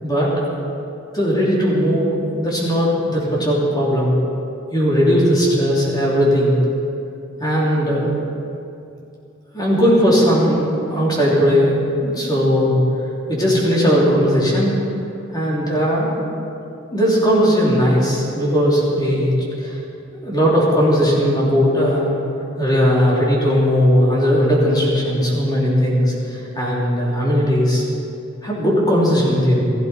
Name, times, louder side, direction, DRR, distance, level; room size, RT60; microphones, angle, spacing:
voice 1, 0.0-0.3 1.1-4.2 4.7-6.6 7.4-8.1 9.5-11.8 12.0-12.7 13.3-14.7 15.3-16.2 16.9-19.3 19.6-19.8 20.1-22.1 22.6-27.8 28.4-29.6, equal, 20° left, -5 dB, 3.4 m, -17 dB
16.0 x 14.5 x 4.5 m, 2.7 s
head